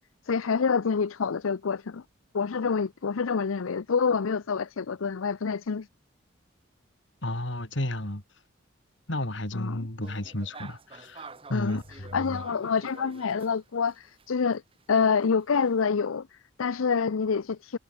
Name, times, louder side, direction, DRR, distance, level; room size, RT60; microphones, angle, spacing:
voice 1, 0.2-2.0 2.3-5.9 9.5-9.9 11.5-14.6 14.9-17.8, left 5 dB, 85° left, 0.6 m, -27 dB
voice 2, 7.2-8.2 9.1-12.4, left 1 dB, 65° left, 3.6 m, -33 dB
sound 1, 10.0-14.3 14.5-15.8, right 3 dB, 25° right, 2.1 m, -48 dB
head